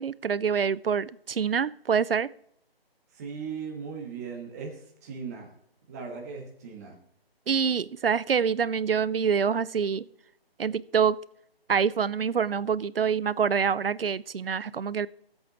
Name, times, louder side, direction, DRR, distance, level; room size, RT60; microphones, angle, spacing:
voice 1, 0.0-2.3 7.5-10.1 10.6-11.2 11.7-15.1, right 6 dB, 65° right, 20 dB, 0.5 m, -26 dB
voice 2, 3.1-5.5 5.9-7.0, right 5 dB, 15° right, 2 dB, 1.3 m, -38 dB
18.0 x 8.0 x 2.9 m, 0.74 s
figure-of-eight pair, 150°, 31 cm